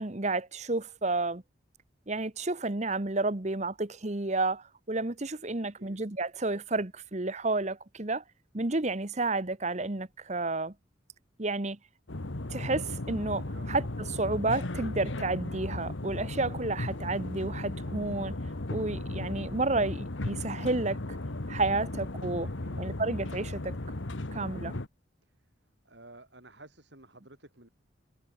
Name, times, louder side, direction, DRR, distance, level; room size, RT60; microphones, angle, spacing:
voice 1, 0.0-1.4 2.1-8.2 8.5-10.7 11.4-11.8 12.5-18.3 18.7-21.0 21.5-22.5 22.8-23.8 24.3-24.7, right 2 dB, 35° right, 1.2 m, -31 dB
sound 1, 12.1-24.9, left 2 dB, 75° left, 1.5 m, -36 dB
voice 2, 25.9-27.7, right 2 dB, 60° right, 5.3 m, -53 dB
head